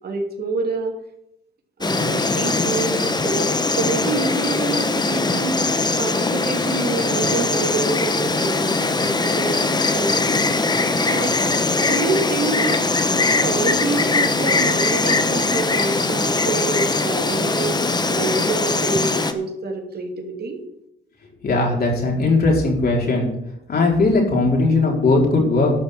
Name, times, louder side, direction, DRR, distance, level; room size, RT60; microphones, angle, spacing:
voice 1, 0.0-0.9 1.8-5.7 6.0-10.3 11.1-11.4 11.8-12.8 13.4-20.6, right 3 dB, 50° right, 3 dB, 2.7 m, -27 dB
Insect, 1.8-19.3, left 3 dB, 20° left, 1.1 m, -21 dB
voice 2, 21.4-23.3 23.7-25.7, left 3 dB, 50° left, -1 dB, 4.6 m, -18 dB
12.0 x 5.5 x 8.7 m, 0.80 s
cardioid pair, 90°, 20 cm